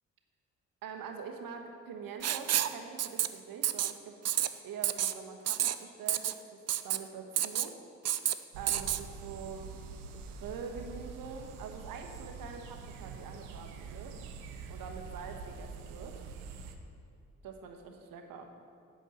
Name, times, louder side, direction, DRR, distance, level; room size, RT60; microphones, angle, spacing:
voice 1, 0.8-4.2 4.6-6.4 6.8-7.7 8.6-9.7 10.1-14.1 14.7-16.1 17.4-18.5, right 6 dB, 70° right, 4 dB, 1.1 m, -44 dB
Writing, 2.2-2.7 3.0-3.3 3.6-3.9 4.2-4.5 4.8-5.1 5.5-5.7 6.1-6.3 6.7-7.0 7.4-7.7 8.0-8.3 8.7-9.0, right 11 dB, 45° right, 0.5 m, -29 dB
sound 1, 8.5-16.8, right 5 dB, 90° right, 0.6 m, -45 dB
7.8 x 6.2 x 6.4 m, 2.4 s
hypercardioid pair, 45°, 36 cm